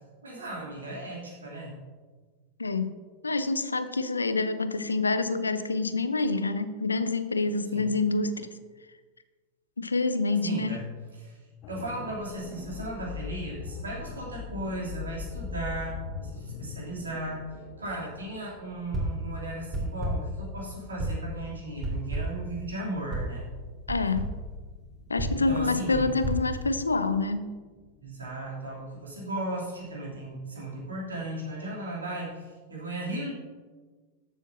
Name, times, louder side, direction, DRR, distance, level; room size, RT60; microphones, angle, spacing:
voice 1, 0.2-1.8 7.7-7.9 10.3-10.9 11.2-11.4 11.7-17.5 17.8-23.5 25.3-26.2 28.0-33.3, right 1 dB, 75° right, -4 dB, 2.9 m, -36 dB
voice 2, 2.6-2.9 3.2-8.5 9.8-10.8 23.9-24.3 25.1-27.6, left 3 dB, 80° left, 12 dB, 0.6 m, -27 dB
sound 1, 11.6-29.5 29.9-30.0, left 6 dB, 40° left, 1.4 m, -43 dB
sound 2, 18.9-19.3 19.7-20.4 21.0-21.3 21.8-22.5 23.1-23.4 23.9-24.4 25.2-27.2, right 1 dB, 20° right, 3.0 m, -32 dB
13.5 x 7.2 x 2.7 m, 1.4 s
figure-of-eight pair, 90°, 0 cm